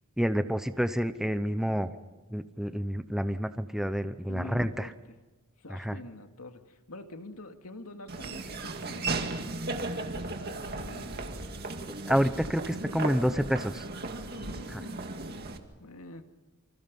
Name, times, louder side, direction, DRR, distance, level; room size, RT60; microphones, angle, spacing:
voice 1, 0.2-1.9 2.3-4.9 5.7-6.0 12.1-13.9 14.7-14.8, equal, ahead, 10 dB, 0.8 m, -29 dB
voice 2, 4.3-4.9 5.6-9.1 10.0-11.5 14.3-15.4 15.8-16.2, left 2 dB, 85° left, 5 dB, 2.2 m, -46 dB
Laughter / Walk footsteps, 8.1-15.6, right 2 dB, 45° right, 2.1 m, -36 dB
28.5 x 25.5 x 5.4 m, 1.2 s
head